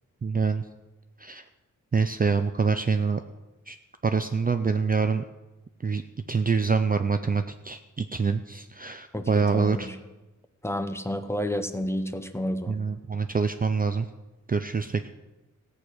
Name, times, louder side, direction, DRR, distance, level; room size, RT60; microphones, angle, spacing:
voice 1, 0.2-0.6 1.2-1.4 1.9-3.2 3.7-3.8 4.0-5.2 5.8-6.0 6.3-9.9 12.7-14.1 14.5-15.1, right 5 dB, 30° right, 8 dB, 0.4 m, -25 dB
voice 2, 9.1-9.9 10.6-12.8, equal, 10° left, 8 dB, 0.8 m, -30 dB
17.0 x 8.3 x 6.1 m, 1.1 s
wide cardioid pair, 170°, 31 cm